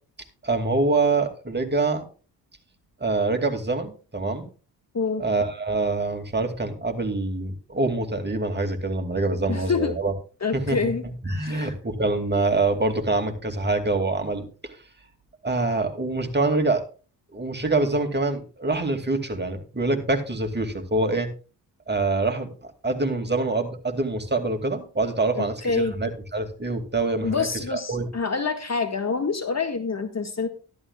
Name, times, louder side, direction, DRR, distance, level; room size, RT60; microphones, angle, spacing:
voice 1, 0.4-2.1 3.0-4.5 5.2-10.1 10.5-10.9 11.2-14.7 15.4-16.8 17.3-21.3 21.9-28.1, right 2 dB, 20° right, 4 dB, 2.4 m, -25 dB
voice 2, 4.9-5.3 9.5-10.0 10.4-11.0 11.4-11.7 25.3-26.0 27.2-30.5, left 4 dB, 35° left, 7 dB, 1.7 m, -26 dB
13.5 x 12.5 x 2.4 m, 0.36 s
hypercardioid pair, 40°, 48 cm